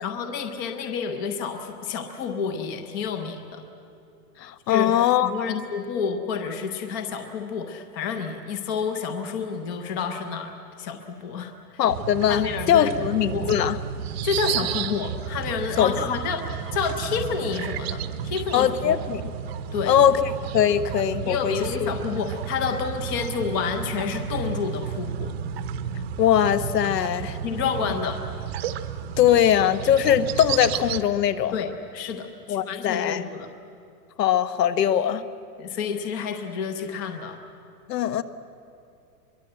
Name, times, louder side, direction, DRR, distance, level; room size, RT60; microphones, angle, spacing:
voice 1, 0.0-3.6 4.7-10.5 10.8-11.8 12.3-13.5 14.2-19.0 19.7-20.0 21.2-25.3 27.4-28.2 31.5-33.5 35.6-37.4, left 6 dB, 15° left, 6 dB, 0.5 m, -29 dB
voice 2, 4.4-5.6 11.8-13.8 15.8-15.9 18.5-19.2 19.9-21.5 21.8-21.9 26.2-27.4 29.2-31.6 32.5-33.2 34.2-35.2 37.9-38.2, left 10 dB, 75° left, 11 dB, 1.3 m, -21 dB
sound 1, 11.9-31.0, right 8 dB, 40° right, 0.9 m, -32 dB
23.5 x 22.5 x 7.7 m, 2.5 s
supercardioid pair, 165°, 50 cm